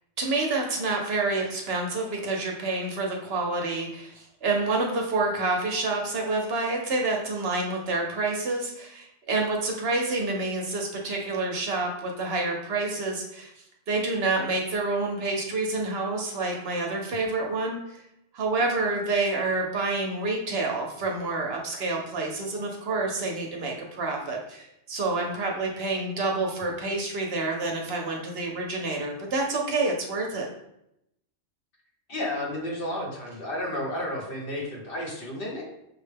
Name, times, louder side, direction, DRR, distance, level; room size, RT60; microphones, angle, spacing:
voice 1, 0.2-13.5 13.9-18.0 18.3-30.5, right 3 dB, 60° right, 1 dB, 0.9 m, -28 dB
voice 2, 32.1-35.6, left 1 dB, 50° left, -2 dB, 1.1 m, -32 dB
6.1 x 2.1 x 3.3 m, 0.81 s
omnidirectional pair, 1.2 m